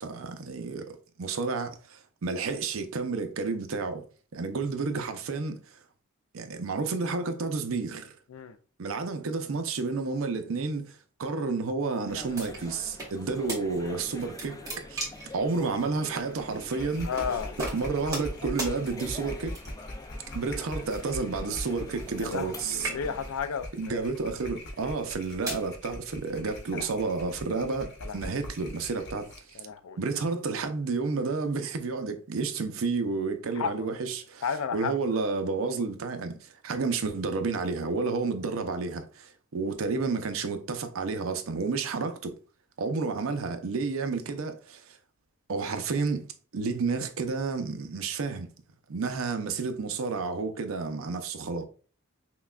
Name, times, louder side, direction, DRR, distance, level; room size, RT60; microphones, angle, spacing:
voice 1, 0.0-4.0 4.3-5.6 6.3-8.1 8.8-10.9 11.2-15.1 15.3-17.1 17.7-19.6 20.3-22.9 23.8-29.6 30.0-34.4 34.7-42.3 42.8-44.8 45.5-46.3 46.5-48.5 48.9-51.7, right 4 dB, 70° right, 0.5 m, -31 dB
sound 1, 12.1-23.3, left 2 dB, 15° left, 0.3 m, -45 dB
sound 2, 12.3-13.1 13.5-13.6 14.0-15.3 16.1-16.3 17.2-17.3 17.6-18.3 18.6-18.7 19.5-19.9 20.9-22.5 22.7-23.3 24.0-24.3 25.0-25.7, right 2 dB, 15° right, 1.5 m, -36 dB
sound 3, 16.1-29.5, left 1 dB, 55° left, 0.9 m, -42 dB
voice 2, 17.0-17.5 22.2-24.1 26.7-26.9 28.0-28.2 29.6-30.0 33.6-33.9 34.4-35.0, left 6 dB, 90° left, 0.4 m, -33 dB
5.8 x 2.2 x 2.3 m
head